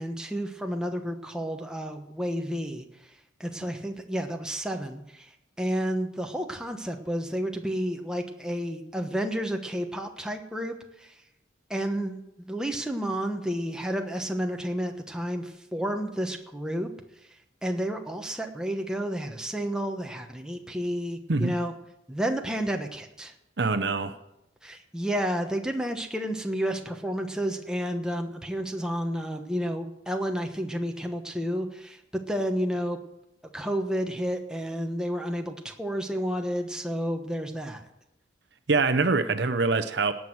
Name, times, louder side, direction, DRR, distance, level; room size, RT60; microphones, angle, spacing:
voice 1, 0.0-2.8 3.4-5.3 5.6-11.1 11.7-16.9 17.6-21.7 22.1-23.3 24.6-32.0 32.3-33.0 33.5-37.9, equal, 5° right, 3 dB, 1.1 m, -31 dB
voice 2, 23.6-24.1 38.7-40.1, right 3 dB, 60° right, 9 dB, 0.8 m, -24 dB
18.5 x 6.3 x 7.8 m, 0.88 s
head